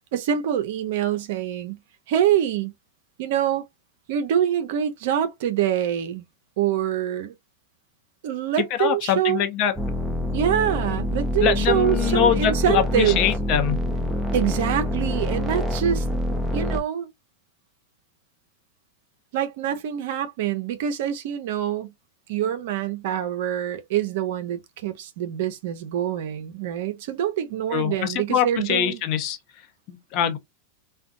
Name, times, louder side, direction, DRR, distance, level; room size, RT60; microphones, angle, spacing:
voice 1, 0.1-1.8 2.1-2.7 3.2-3.6 4.1-6.2 6.6-7.3 8.2-9.4 10.3-13.2 14.3-16.0 16.5-17.1 19.3-21.9 22.3-29.0, right 10 dB, 65° right, 0.5 m, -25 dB
voice 2, 8.8-9.7 11.4-13.8 27.7-29.4 29.9-30.4, left 9 dB, 50° left, 0.7 m, -23 dB
sound 1, 9.8-16.8, left 1 dB, 5° right, 0.6 m, -26 dB
2.5 x 2.2 x 2.5 m
hypercardioid pair, 110°, 0 cm